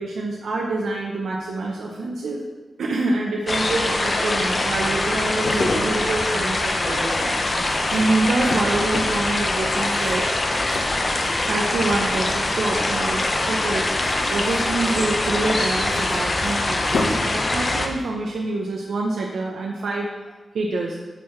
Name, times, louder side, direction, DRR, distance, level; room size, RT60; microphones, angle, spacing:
voice 1, 0.0-2.4 2.8-7.2 7.9-10.3 11.4-13.9 14.3-20.1 20.5-21.0, right 2 dB, 80° right, -1 dB, 0.7 m, -26 dB
sound 1, 3.5-17.9, left 2 dB, 30° left, 0.6 m, -23 dB
sound 2, 5.2-11.6 11.9-12.5 13.9-17.4 17.6-17.8, left 2 dB, 90° left, 1.0 m, -32 dB
9.1 x 5.6 x 3.2 m, 1.2 s
wide cardioid pair, 175°, 0 cm